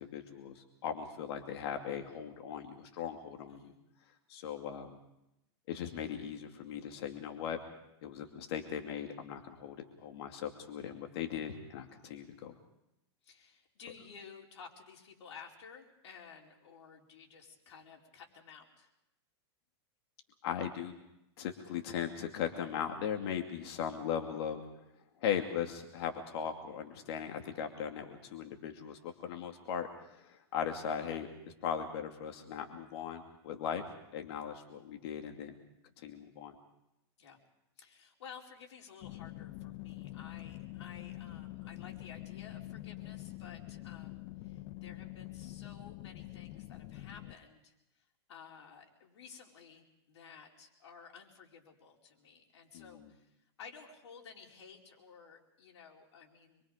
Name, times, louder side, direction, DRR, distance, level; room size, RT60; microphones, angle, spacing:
voice 1, 0.0-3.7 4.3-5.0 5.7-7.6 8.0-12.5 20.4-20.9 21.4-24.6 25.2-31.3 31.6-33.8 34.1-35.6 36.0-36.6 52.7-53.1, left 8 dB, 65° left, 4 dB, 2.5 m, -38 dB
voice 2, 3.5-3.8 13.2-18.9 37.2-37.4 37.8-53.3 53.6-56.6, left 6 dB, 80° left, 0 dB, 4.7 m, -54 dB
sound 1, 39.0-47.3, left 17 dB, 45° left, 1.1 m, -45 dB
26.5 x 23.5 x 5.1 m, 0.86 s
supercardioid pair, 140°, 14 cm